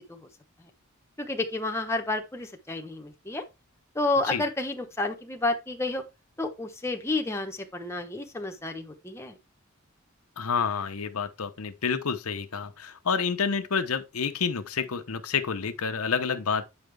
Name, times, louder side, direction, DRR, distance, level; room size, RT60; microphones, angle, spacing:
voice 1, 1.2-3.5 3.9-6.0 6.4-9.4, left 2 dB, 10° left, 0.9 m, -30 dB
voice 2, 10.4-16.7, left 6 dB, 85° left, 0.9 m, -29 dB
8.9 x 5.1 x 3.4 m
head